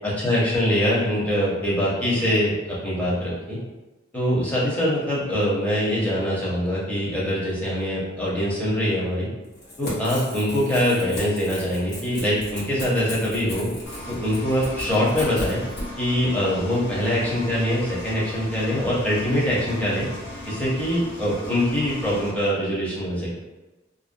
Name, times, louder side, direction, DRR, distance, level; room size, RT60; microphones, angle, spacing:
voice 1, 0.0-3.6 4.1-9.3 9.8-13.7 14.1-15.6 16.0-20.1 20.5-23.3, equal, 10° left, -8 dB, 0.7 m, -23 dB
Crackle / Tearing, 9.5-15.9, left 1 dB, 60° left, 0.9 m, -36 dB
Engine, 13.8-22.3, left 1 dB, 80° left, 1.1 m, -38 dB
2.5 x 2.0 x 2.5 m, 1.1 s
head